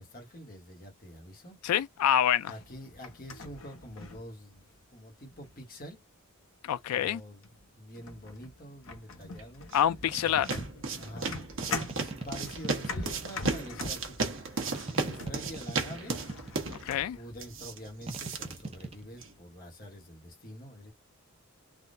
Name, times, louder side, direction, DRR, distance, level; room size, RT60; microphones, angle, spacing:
voice 1, 0.0-1.6 2.5-4.7 4.9-6.0 6.9-7.4 7.8-9.7 10.2-11.4 11.8-14.5 15.0-16.2 17.1-20.9, equal, 40° left, 1.2 m, -46 dB
voice 2, 1.6-2.5 6.6-7.2 9.7-10.5 16.7-17.2, left 10 dB, 85° left, 0.3 m, -27 dB
sound 1, 2.6-4.8 5.3-5.7 6.8-6.9 7.4-7.6 7.9-17.1, left 3 dB, 65° left, 0.8 m, -42 dB
sound 2, 9.4-19.4, right 4 dB, 60° right, 0.9 m, -36 dB
sound 3, 10.1-10.7 11.6-13.7 14.7-16.9 18.1-19.0, right 2 dB, 25° right, 0.5 m, -41 dB
3.5 x 2.3 x 2.6 m
head